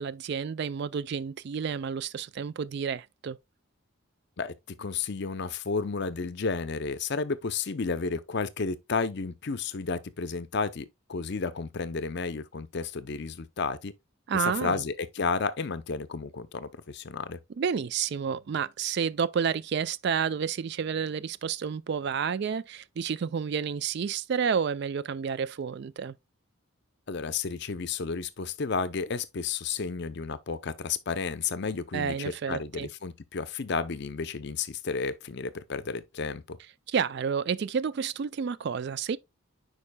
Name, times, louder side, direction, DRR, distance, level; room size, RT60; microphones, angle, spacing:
voice 1, 0.0-3.4 14.3-14.8 17.6-26.2 31.9-32.9 36.9-39.2, right 6 dB, 50° right, 0.3 m, -30 dB
voice 2, 4.4-13.9 14.3-17.4 27.1-36.6, left 4 dB, 55° left, 0.6 m, -32 dB
9.8 x 4.8 x 2.2 m
head